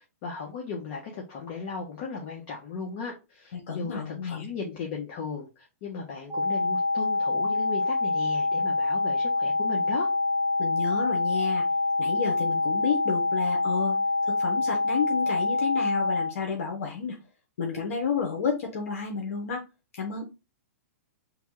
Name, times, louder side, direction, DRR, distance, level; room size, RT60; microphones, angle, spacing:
voice 1, 0.2-10.1, left 5 dB, 45° left, -1 dB, 1.1 m, -36 dB
voice 2, 3.5-4.5 10.6-11.6 12.0-14.0 14.3-17.2 17.6-19.6 19.9-20.2, left 6 dB, 70° left, 1 dB, 1.1 m, -31 dB
sound 1, 6.3-16.3, left 2 dB, 5° right, 0.8 m, -26 dB
3.6 x 2.4 x 4.5 m, 0.27 s
hypercardioid pair, 145°, 8 cm